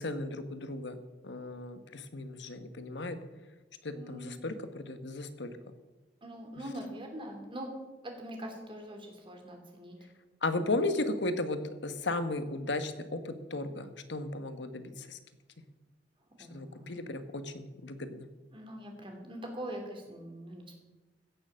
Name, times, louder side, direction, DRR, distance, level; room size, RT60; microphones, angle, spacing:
voice 1, 0.0-3.2 3.8-5.6 10.4-15.2 16.5-18.3, left 2 dB, 80° left, 10 dB, 1.2 m, -35 dB
voice 2, 3.9-4.4 6.2-7.7 8.0-10.0 10.5-10.7 16.4-16.9 18.5-20.8, right 1 dB, 30° right, 2 dB, 2.9 m, -43 dB
16.0 x 6.8 x 7.5 m, 1.2 s
head